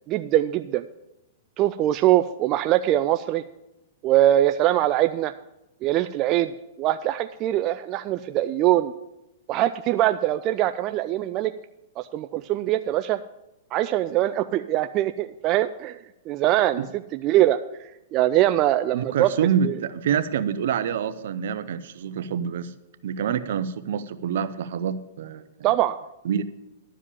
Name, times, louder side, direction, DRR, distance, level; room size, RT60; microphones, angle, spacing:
voice 1, 0.1-0.8 1.6-3.4 4.0-5.3 5.8-6.5 6.8-8.9 9.5-11.5 12.0-13.2 13.7-16.0 16.3-19.3 19.6-19.8 25.6-26.0, right 14 dB, 35° right, 9 dB, 0.3 m, -22 dB
voice 2, 18.9-22.7 23.0-25.4 26.2-26.4, right 8 dB, 65° right, 13 dB, 0.7 m, -26 dB
11.0 x 5.0 x 8.5 m, 0.94 s
hypercardioid pair, 130°, 0 cm